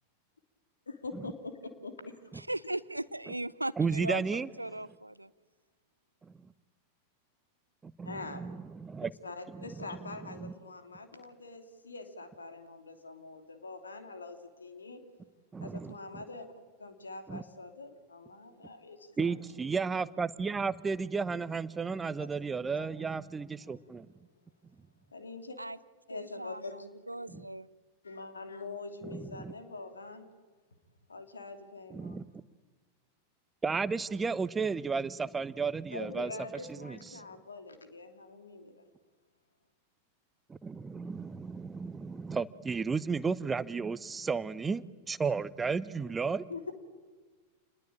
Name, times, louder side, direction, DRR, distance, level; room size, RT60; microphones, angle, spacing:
voice 1, 0.9-2.2 8.0-8.4 9.2-15.0 15.6-16.5 16.8-19.3 22.2-22.3 22.7-22.9 23.6-23.9 25.1-25.6 26.1-26.9 28.0-30.3 31.1-32.2 35.9-38.9 46.5-46.7, left 3 dB, 75° left, 7 dB, 2.9 m, -44 dB
voice 2, 2.4-5.3 25.6-25.8 26.1-27.7, right 1 dB, 85° right, 19 dB, 0.8 m, -38 dB
voice 3, 3.8-4.5 8.0-9.1 9.5-9.6 10.4-10.5 15.5-16.2 17.3-17.4 19.2-24.1 27.3-27.4 29.0-29.5 31.9-32.2 33.6-36.3 36.8-37.2 40.5-46.5, right 5 dB, 15° right, 18 dB, 0.8 m, -33 dB
28.5 x 21.0 x 8.8 m, 1.3 s
figure-of-eight pair, 90°, 0 cm